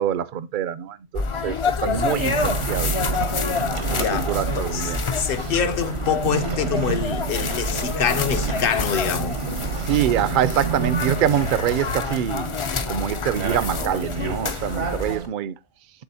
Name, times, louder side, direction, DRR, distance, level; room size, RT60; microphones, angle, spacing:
voice 1, 0.0-2.9 3.9-5.0 9.8-12.5 12.9-15.5, right 10 dB, 60° right, 0.6 m, -25 dB
sound 1, 1.2-15.2, left 4 dB, 40° left, 0.4 m, -28 dB
sound 2, 1.9-15.3, right 5 dB, 90° right, 1.6 m, -30 dB
voice 2, 3.9-9.4, left 7 dB, 55° left, 0.9 m, -26 dB
12.0 x 4.0 x 2.7 m
omnidirectional pair, 1.2 m